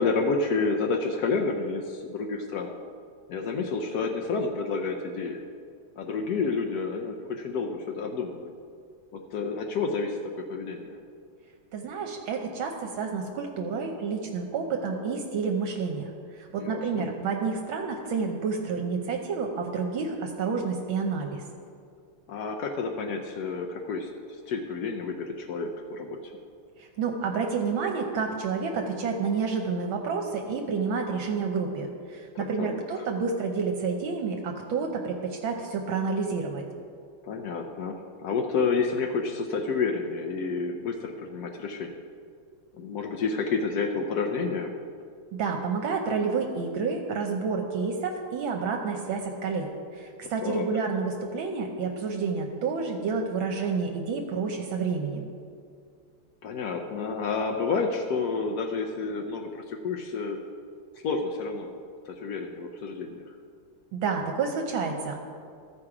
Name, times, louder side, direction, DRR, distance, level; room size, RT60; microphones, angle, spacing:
voice 1, 0.0-2.7 3.3-5.4 6.0-8.5 9.1-11.0 16.6-17.1 22.3-26.2 32.3-33.0 37.2-41.9 42.8-44.7 50.2-50.7 56.4-60.4 61.0-61.8 62.1-63.3, left 4 dB, 85° left, 2 dB, 0.8 m, -30 dB
voice 2, 11.7-16.1 16.4-21.4 26.8-36.6 45.3-55.3 63.9-65.2, right 5 dB, 75° right, 2 dB, 1.4 m, -29 dB
13.5 x 4.9 x 4.8 m, 2.2 s
omnidirectional pair, 2.4 m